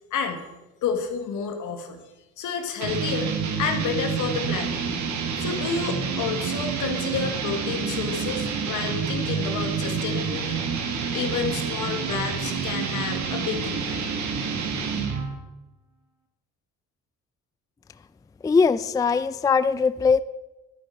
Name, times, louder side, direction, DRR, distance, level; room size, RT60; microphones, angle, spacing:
voice 1, 0.1-0.5 0.8-2.0 2.4-3.3 3.6-4.8 5.4-10.6 11.1-14.0, left 6 dB, 85° left, 5 dB, 1.8 m, -30 dB
sound 1, 2.8-15.3, right 5 dB, 70° right, 1.6 m, -28 dB
voice 2, 18.4-20.2, left 5 dB, 10° left, 15 dB, 0.3 m, -21 dB
11.5 x 9.5 x 4.6 m, 1.0 s
cardioid pair, 90°, 30 cm